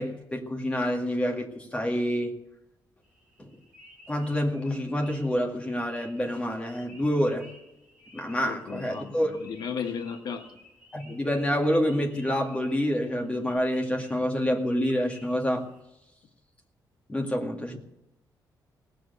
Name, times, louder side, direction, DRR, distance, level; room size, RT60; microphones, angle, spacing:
voice 1, 0.0-2.3 3.4-3.5 4.1-7.5 8.1-9.3 10.9-15.6 17.1-17.8, equal, 15° left, 2 dB, 2.0 m, -27 dB
sound 1, 3.0-15.8, left 1 dB, 15° right, 5.9 m, -54 dB
voice 2, 8.4-10.5, left 6 dB, 65° left, 6 dB, 1.2 m, -35 dB
18.5 x 7.8 x 8.0 m, 0.88 s
wide cardioid pair, 165°, 8 cm